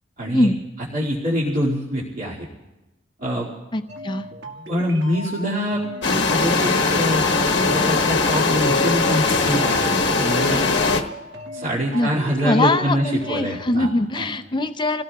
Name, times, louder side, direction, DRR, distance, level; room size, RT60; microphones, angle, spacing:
voice 1, 0.2-0.5 0.9-2.5 3.2-3.5 4.7-5.8 6.3-7.3 7.7-9.9 10.2-10.6 11.5-13.9 14.2-14.3, equal, 45° right, -8 dB, 2.4 m, -24 dB
voice 2, 3.7-4.3 11.9-12.1 12.4-15.0, left 2 dB, 25° left, 10 dB, 0.6 m, -22 dB
sound 1, 3.9-14.1, left 1 dB, 70° right, 1.7 m, -37 dB
sound 2, 6.0-11.0, left 3 dB, 70° left, 1.1 m, -20 dB
29.0 x 17.0 x 2.4 m, 1.1 s
head